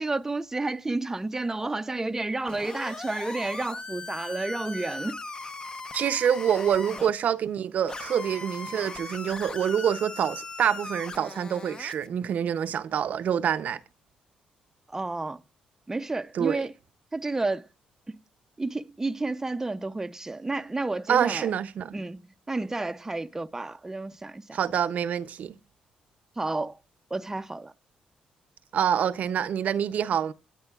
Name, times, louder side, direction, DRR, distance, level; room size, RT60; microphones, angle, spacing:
voice 1, 0.0-5.2 14.9-15.4 15.9-16.7 17.1-17.7 18.1-18.2 18.6-21.5 21.9-22.2 22.5-24.6 26.4-26.8 27.1-27.7, right 2 dB, 15° right, 0.5 m, -31 dB
sound 1, 2.5-7.1 7.9-12.1, left 3 dB, 30° left, 0.7 m, -39 dB
voice 2, 5.9-13.8 16.3-16.7 21.1-21.9 24.5-25.6 28.7-30.3, right 8 dB, 65° right, 0.5 m, -26 dB
sound 2, 8.1-10.6, left 2 dB, 65° left, 4.0 m, -55 dB
22.5 x 9.6 x 2.3 m
cardioid pair, 70°, 3 cm